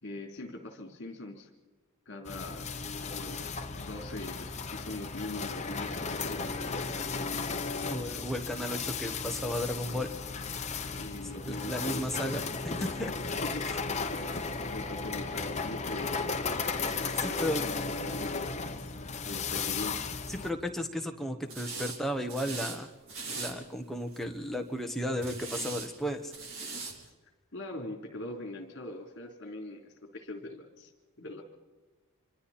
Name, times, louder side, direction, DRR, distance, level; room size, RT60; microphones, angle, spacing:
voice 1, 0.0-1.5 2.1-2.7 3.1-3.4 3.8-6.5 11.0-12.0 13.4-14.4 14.7-16.2 16.9-18.7 19.2-20.1 27.5-29.8 30.1-30.9 31.2-31.4, left 2 dB, 55° left, 3 dB, 3.4 m, -42 dB
sound 1, 2.2-20.5, left 4 dB, 30° left, 1.2 m, -35 dB
voice 2, 7.9-10.1 11.5-13.1 13.7-13.8 17.1-17.6 20.3-22.9 23.3-26.3, equal, ahead, 3 dB, 1.3 m, -34 dB
sound 2, 21.5-22.0 22.3-22.8 23.1-23.5 24.1-24.4 25.2-25.9 26.3-26.9, right 4 dB, 60° right, 3.4 m, -39 dB
26.5 x 25.0 x 4.4 m, 1.2 s
head